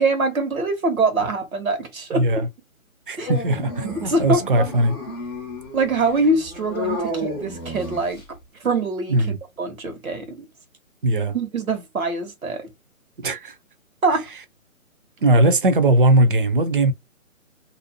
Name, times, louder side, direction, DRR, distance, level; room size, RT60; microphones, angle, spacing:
voice 1, 0.0-2.3 3.2-3.3 3.8-5.0 5.7-8.2 8.6-10.5 11.3-12.7 14.0-14.3, right 3 dB, 80° right, 1.1 m, -24 dB
voice 2, 2.1-2.5 3.1-4.9 9.1-9.4 11.0-11.3 13.2-13.5 15.2-16.9, right 1 dB, 40° right, 0.4 m, -19 dB
Dog, 3.3-8.4, left 1 dB, 20° left, 0.4 m, -32 dB
2.6 x 2.0 x 2.8 m
figure-of-eight pair, 140°, 41 cm